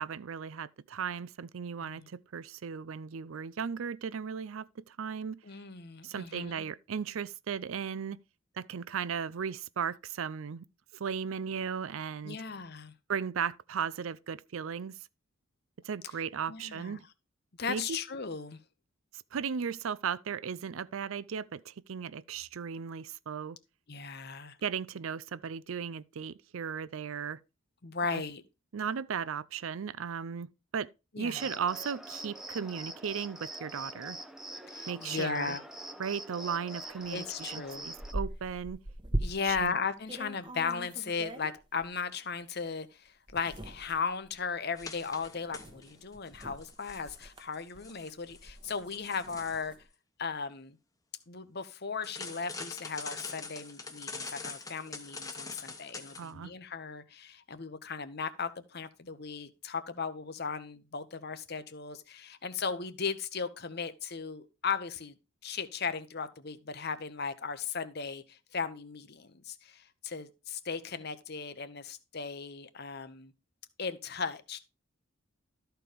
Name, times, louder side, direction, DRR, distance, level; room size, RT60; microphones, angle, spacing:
voice 1, 0.0-5.4 6.0-8.2 8.6-10.6 10.9-12.4 13.1-14.9 15.8-17.0 17.7-18.0 19.3-23.6 24.6-27.4 28.1-28.2 28.7-30.9 31.2-34.2 34.9-35.6 36.0-38.8 39.4-39.7 56.2-56.5, right 7 dB, 75° right, 0.5 m, -36 dB
voice 2, 5.4-6.6 12.2-12.9 16.5-17.0 17.6-18.6 23.9-24.6 27.8-28.4 31.1-31.4 34.7-35.6 37.1-37.9 39.2-49.7 50.2-50.8 51.3-65.1 65.4-73.3 73.8-74.6, left 5 dB, 50° left, 0.9 m, -37 dB
Cricket, 31.3-38.1, right 1 dB, ahead, 0.7 m, -44 dB
sound 1, 37.0-37.1 37.5-39.7 40.1-41.9 42.5-42.6 43.3-49.8, right 1 dB, 25° right, 1.1 m, -40 dB
sound 2, 44.8-45.9 46.3-49.7 52.0-56.3, left 4 dB, 15° left, 1.1 m, -44 dB
13.0 x 4.6 x 5.1 m
head